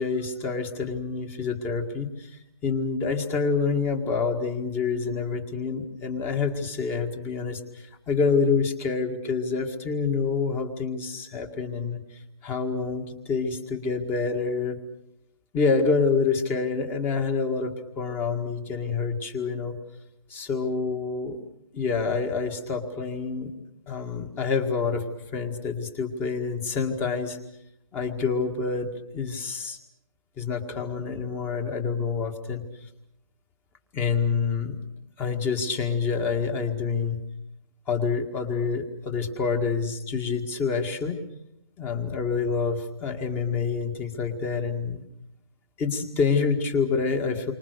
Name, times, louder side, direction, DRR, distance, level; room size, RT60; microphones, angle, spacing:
voice 1, 0.0-14.8 15.5-19.8 20.3-21.4 21.7-23.5 23.9-25.0 25.3-27.4 27.9-28.9 29.1-29.8 30.4-32.6 33.9-34.8 35.2-37.2 37.9-41.2 41.8-45.0 45.8-47.5, left 5 dB, 15° left, 6 dB, 1.9 m, -27 dB
29.0 x 25.0 x 6.7 m, 0.79 s
hypercardioid pair, 160°, 17 cm